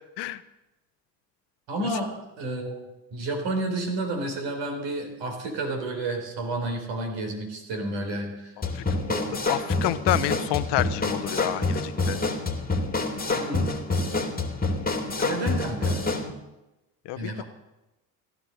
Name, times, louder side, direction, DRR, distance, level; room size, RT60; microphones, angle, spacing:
voice 1, 1.7-2.8 3.1-8.6 9.1-9.3 13.2-13.7 15.2-16.0 17.2-17.4, right 2 dB, 65° right, 4 dB, 4.3 m, -31 dB
sound 1, 8.6-16.3, left 3 dB, 20° left, 2.5 m, -27 dB
voice 2, 9.5-12.2 15.2-15.3 17.0-17.4, left 15 dB, 60° left, 15 dB, 1.0 m, -29 dB
16.5 x 12.0 x 6.5 m, 1.0 s
hypercardioid pair, 60°, 48 cm